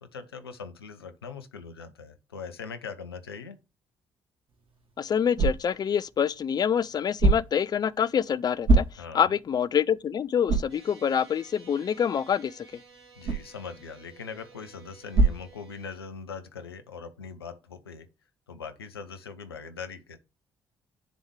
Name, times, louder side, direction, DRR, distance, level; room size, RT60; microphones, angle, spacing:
voice 1, 0.0-3.6 9.0-9.3 13.2-18.1 18.5-20.2, left 5 dB, 80° left, 0.6 m, -41 dB
sound 1, 4.5-16.2, right 3 dB, 45° right, 2.6 m, -30 dB
voice 2, 5.0-8.9 9.1-12.7, left 8 dB, 35° left, 0.4 m, -26 dB
sound 2, 10.7-16.0, right 4 dB, 85° right, 2.2 m, -54 dB
10.0 x 3.5 x 3.2 m
figure-of-eight pair, 45°, 13 cm